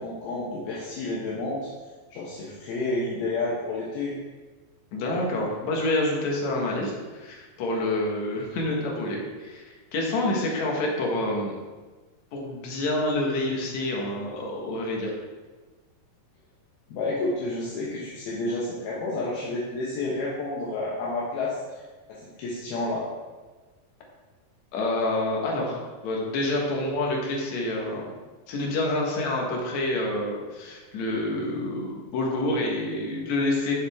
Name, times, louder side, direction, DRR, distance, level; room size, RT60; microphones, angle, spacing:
voice 1, 0.0-1.7 2.1-4.2 16.9-21.8 22.1-23.1, left 2 dB, 75° left, -6 dB, 3.0 m, -30 dB
voice 2, 4.9-9.7 9.9-11.6 12.3-15.1 24.7-28.0 28.5-33.7, left 2 dB, 55° left, -1 dB, 2.3 m, -27 dB
7.6 x 7.3 x 3.6 m, 1.3 s
omnidirectional pair, 4.5 m